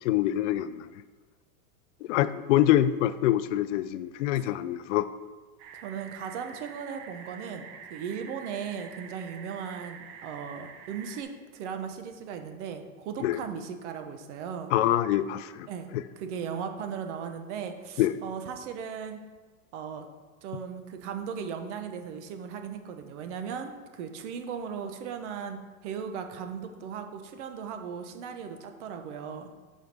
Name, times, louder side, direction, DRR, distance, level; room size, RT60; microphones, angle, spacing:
voice 1, 0.0-0.9 2.0-5.1 13.2-13.4 14.7-15.7 15.9-16.0 18.0-18.1, left 13 dB, 60° left, 14 dB, 0.5 m, -25 dB
sound 1, 5.6-11.2, right 6 dB, 30° right, 0.5 m, -46 dB
voice 2, 5.7-14.7 15.7-15.9 16.2-19.2 19.7-20.0 20.4-29.5, right 7 dB, 55° right, 6 dB, 1.0 m, -37 dB
6.4 x 4.6 x 5.3 m, 1.4 s
supercardioid pair, 140°, 43 cm